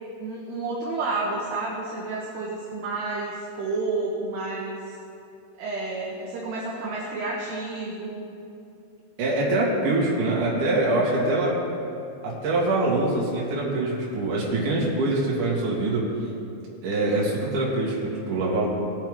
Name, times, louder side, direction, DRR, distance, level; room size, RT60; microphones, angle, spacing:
voice 1, 0.2-4.9 5.6-8.2 11.1-11.6, right 3 dB, 70° right, -3 dB, 3.0 m, -30 dB
voice 2, 9.2-11.6 12.2-16.1 16.8-18.7, right 2 dB, 50° right, -5 dB, 3.2 m, -24 dB
20.0 x 8.9 x 3.8 m, 2.6 s
omnidirectional pair, 5.7 m